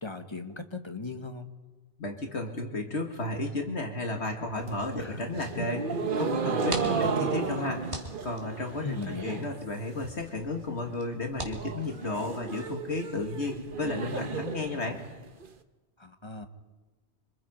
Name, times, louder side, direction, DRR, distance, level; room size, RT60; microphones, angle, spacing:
voice 1, 0.0-1.5 5.0-5.2 6.8-7.3 8.8-9.5 16.0-16.5, left 4 dB, 25° left, 6 dB, 1.3 m, -38 dB
voice 2, 2.0-7.9 8.2-15.0, left 2 dB, 70° left, 3 dB, 2.4 m, -33 dB
sound 1, 4.5-9.6 9.9-10.4 10.7-10.8 11.1-11.2 11.5-15.5, right 5 dB, 50° right, 1.2 m, -33 dB
sound 2, 6.4-12.7, right 1 dB, 25° right, 2.7 m, -44 dB
26.5 x 25.5 x 5.2 m, 1.2 s
omnidirectional pair, 1.2 m